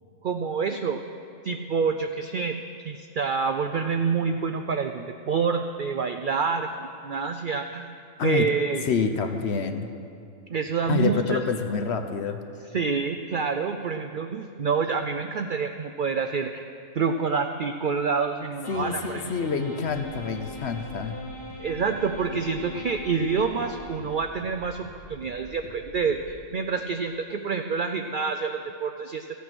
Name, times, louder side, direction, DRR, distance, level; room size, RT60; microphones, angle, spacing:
voice 1, 0.2-1.0 1.4-2.6 2.8-7.9 8.2-8.9 10.5-11.4 12.7-16.6 16.9-19.3 21.6-29.4, right 5 dB, 75° right, 6 dB, 0.4 m, -27 dB
voice 2, 8.8-9.9 10.9-12.4 18.7-21.2, left 5 dB, 55° left, 6 dB, 0.9 m, -27 dB
sound 1, 18.6-24.4, left 1 dB, 40° left, 2.0 m, -42 dB
sound 2, 19.8-26.5, right 1 dB, 90° left, 1.8 m, -48 dB
14.5 x 8.3 x 6.1 m, 2.4 s
omnidirectional pair, 1.5 m